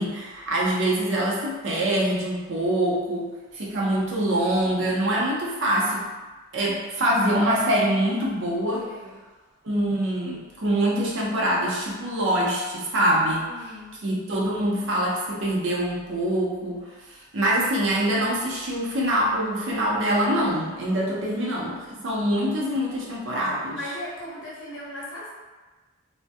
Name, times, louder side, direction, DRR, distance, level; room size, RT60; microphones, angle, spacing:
voice 1, 0.0-6.1 6.5-8.9 9.6-16.9 17.3-23.8, right 1 dB, 65° right, -4 dB, 0.6 m, -24 dB
voice 2, 8.8-9.2 13.4-14.0 21.6-22.0 23.7-25.3, left 1 dB, 70° left, -6 dB, 0.8 m, -38 dB
2.4 x 2.1 x 2.5 m, 1.3 s
head